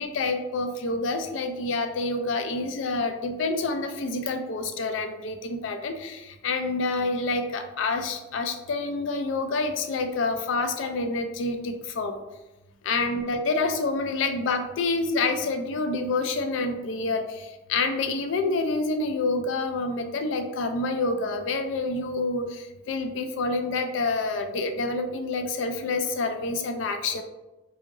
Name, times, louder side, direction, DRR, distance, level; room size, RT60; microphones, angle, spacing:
voice 1, 0.0-12.2 12.8-17.2 17.7-22.5 22.9-27.2, left 3 dB, 65° left, 6 dB, 0.3 m, -27 dB
2.8 x 2.7 x 2.5 m, 1.0 s
head